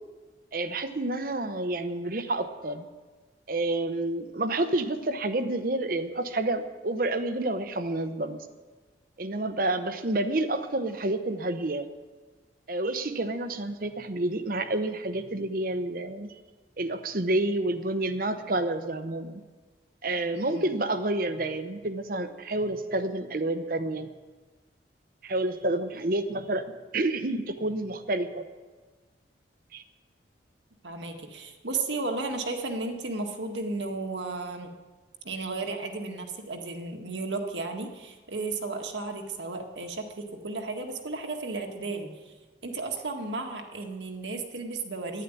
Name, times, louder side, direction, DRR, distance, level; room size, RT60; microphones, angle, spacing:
voice 1, 0.5-2.8 3.5-8.5 9.2-11.9 12.7-16.3 16.8-19.4 20.0-24.1 25.2-28.4 29.7-29.8, right 2 dB, 50° right, 9 dB, 0.9 m, -29 dB
voice 2, 20.3-20.6 30.8-34.7 35.2-42.3 42.6-45.2, right 3 dB, 85° right, 3 dB, 1.8 m, -34 dB
11.5 x 10.5 x 9.2 m, 1.3 s
head